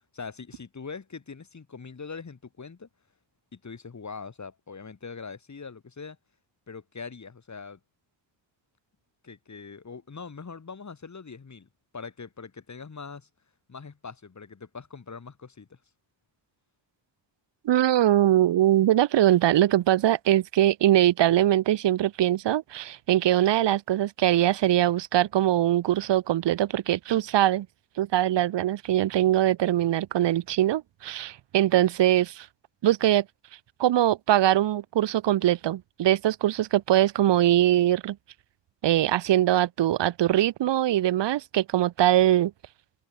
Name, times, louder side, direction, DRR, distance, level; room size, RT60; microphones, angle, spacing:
voice 1, 0.1-2.9 3.5-6.2 6.7-7.8 9.2-13.3 13.7-15.8, left 5 dB, 35° left, 2.1 m, -42 dB
voice 2, 17.6-27.7 28.0-32.5 32.8-33.2 33.8-38.2 38.8-42.5, right 13 dB, 65° right, 0.6 m, -22 dB
open air
cardioid pair, 75°, 46 cm